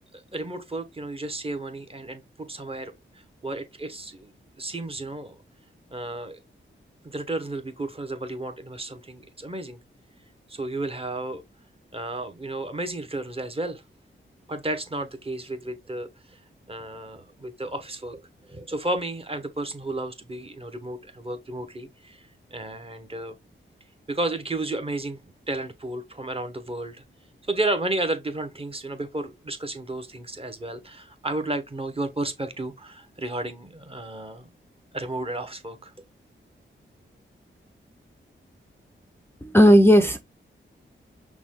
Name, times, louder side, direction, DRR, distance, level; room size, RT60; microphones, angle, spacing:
voice 1, 0.1-4.3 4.6-5.4 5.9-6.4 7.0-9.8 10.5-11.4 11.9-13.8 14.5-16.4 16.7-18.2 18.5-23.3 24.1-25.2 25.5-27.0 27.5-34.5 34.9-35.9, right 2 dB, 25° right, 1.0 m, -32 dB
voice 2, 39.4-40.2, equal, 10° left, 0.5 m, -14 dB
5.9 x 2.2 x 3.5 m
cardioid pair, 65°, 21 cm